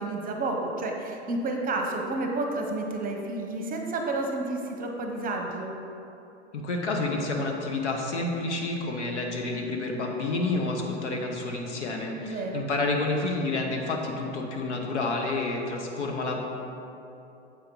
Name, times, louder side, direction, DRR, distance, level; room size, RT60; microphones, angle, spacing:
voice 1, 0.0-5.7 12.2-12.7, right 2 dB, 25° right, 2 dB, 0.8 m, -30 dB
voice 2, 6.5-16.4, left 2 dB, 80° left, 1 dB, 1.2 m, -29 dB
7.6 x 5.0 x 4.6 m, 2.8 s
hypercardioid pair, 105°, 34 cm